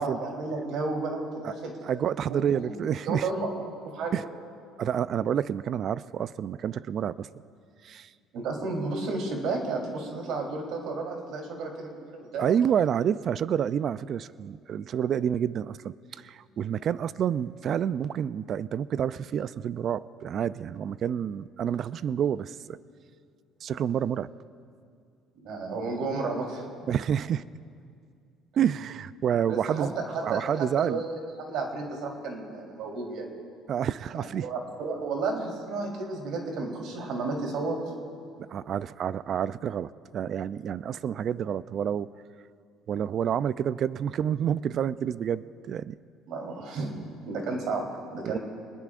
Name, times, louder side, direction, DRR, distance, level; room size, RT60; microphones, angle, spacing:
voice 1, 0.0-1.7 2.3-2.8 3.1-3.5 3.8-4.2 8.3-12.5 25.4-26.6 29.5-33.3 34.2-37.8 46.3-46.9 47.3-47.9 48.1-48.4, right 3 dB, 65° right, 1 dB, 3.6 m, -32 dB
voice 2, 1.8-3.3 4.1-4.2 4.8-7.3 7.8-8.1 12.4-22.8 23.6-24.3 26.9-27.4 28.6-29.9 30.2-31.0 33.7-34.5 38.4-42.1 42.9-46.0 48.2-48.4, right 9 dB, 45° right, 17 dB, 0.4 m, -28 dB
25.0 x 20.5 x 2.5 m, 2.3 s
cardioid pair, 130°, 0 cm